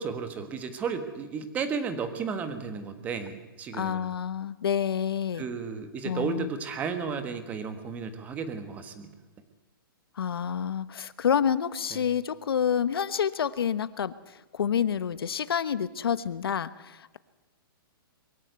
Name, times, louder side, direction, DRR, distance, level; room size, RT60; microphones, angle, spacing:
voice 1, 0.0-4.1 5.3-9.1 11.9-12.0, right 5 dB, 15° right, 9 dB, 1.4 m, -33 dB
voice 2, 3.7-5.4 6.0-6.5 10.2-17.2, left 8 dB, 85° left, 15 dB, 1.1 m, -28 dB
23.0 x 14.5 x 9.5 m, 1.1 s
hypercardioid pair, 170°, 12 cm